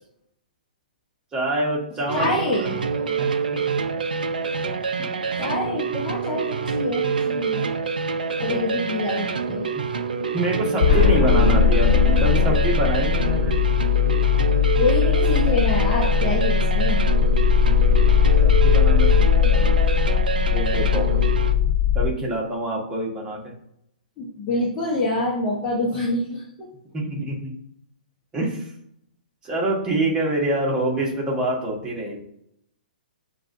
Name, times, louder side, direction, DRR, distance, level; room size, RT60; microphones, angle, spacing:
voice 1, 1.3-2.4 2.9-3.6 5.0-5.1 9.7-9.8 10.3-13.5 17.6-19.9 20.5-21.3 21.9-23.4 26.9-27.5 28.3-28.7 29.4-32.2, right 1 dB, 15° right, -2 dB, 1.4 m, -26 dB
voice 2, 2.1-2.8 5.4-7.7 8.4-9.6 14.8-17.0 24.2-26.7, left 2 dB, 25° left, -5 dB, 1.1 m, -26 dB
sound 1, 2.1-21.5, right 5 dB, 65° right, 0.5 m, -26 dB
sound 2, 10.8-22.1, left 8 dB, 55° left, 0.6 m, -19 dB
7.5 x 2.5 x 2.7 m, 0.73 s
figure-of-eight pair, 120°, 5 cm